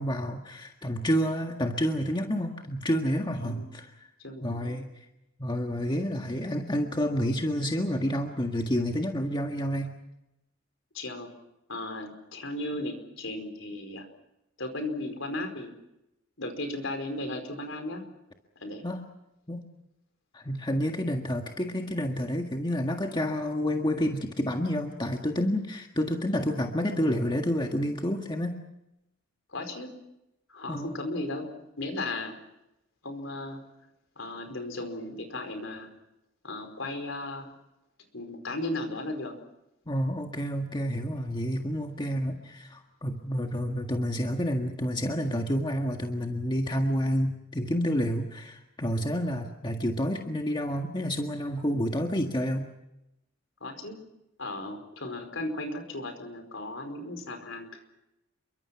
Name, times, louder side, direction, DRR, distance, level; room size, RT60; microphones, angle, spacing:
voice 1, 0.0-4.1 4.4-4.9 5.4-9.9 18.8-19.0 19.5-19.7 20.3-28.6 30.7-31.0 39.9-52.7, equal, 20° left, 3 dB, 1.7 m, -29 dB
voice 2, 4.2-4.7 10.9-11.3 11.7-14.1 14.6-15.7 16.4-18.1 18.6-18.8 29.5-30.0 30.5-31.5 31.8-32.4 33.0-33.6 34.2-35.9 36.4-37.5 38.1-39.3 53.6-54.0 54.4-57.7, left 2 dB, 65° left, 6 dB, 4.8 m, -35 dB
28.5 x 23.5 x 5.9 m, 0.89 s
head